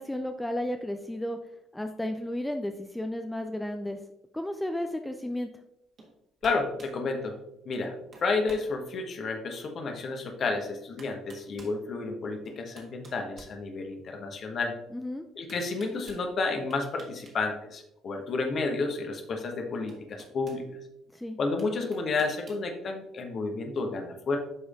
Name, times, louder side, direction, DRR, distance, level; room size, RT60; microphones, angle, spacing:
voice 1, 0.0-1.4 1.7-4.0 4.3-5.5 14.9-15.3 21.1-21.4, left 1 dB, 5° left, 6 dB, 0.5 m, -33 dB
sound 1, 6.0-6.1 6.4-7.0 7.7-8.7 9.3-9.4 10.5-10.6 11.0-11.8 12.4-14.1 15.5-16.2 16.7-17.4 17.7-17.8 19.2-19.3 19.9-20.6 21.6-22.7, right 3 dB, 40° right, 1.7 m, -50 dB
voice 2, 6.4-7.4 7.6-7.9 8.2-14.8 15.4-20.6 21.4-24.4, left 3 dB, 40° left, 4 dB, 1.2 m, -31 dB
11.0 x 4.9 x 2.5 m, 0.89 s
figure-of-eight pair, 50°, 0 cm